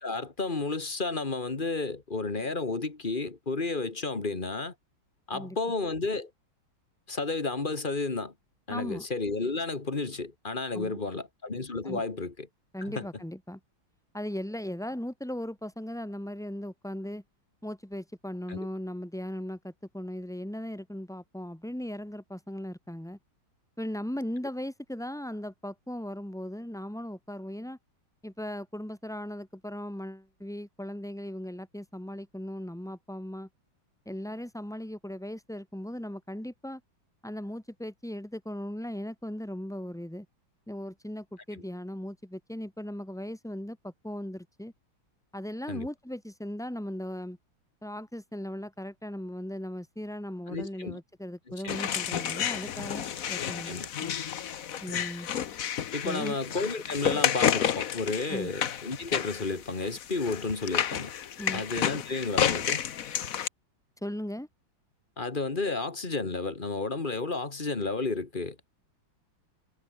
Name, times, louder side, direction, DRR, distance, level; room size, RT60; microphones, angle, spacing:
voice 1, 0.0-4.7 5.3-6.3 7.1-8.3 8.7-12.5 12.9-13.1 18.5-18.7 45.7-45.9 50.5-51.0 51.6-51.8 53.6-53.9 55.9-61.1 61.5-62.8 65.2-68.6, left 3 dB, 25° left, 2.0 m, -32 dB
voice 2, 8.7-9.0 10.7-11.0 11.8-12.0 12.7-13.6 14.1-17.2 17.6-23.2 23.8-27.8 28.2-33.5 34.0-36.8 37.2-40.3 40.7-44.7 45.3-47.4 47.8-54.1 54.8-55.3 56.0-56.4 58.3-58.5 61.4-61.6 64.0-64.5, left 1 dB, ahead, 3.1 m, -38 dB
sound 1, 51.7-63.5, left 9 dB, 50° left, 1.2 m, -31 dB
omnidirectional pair, 2.2 m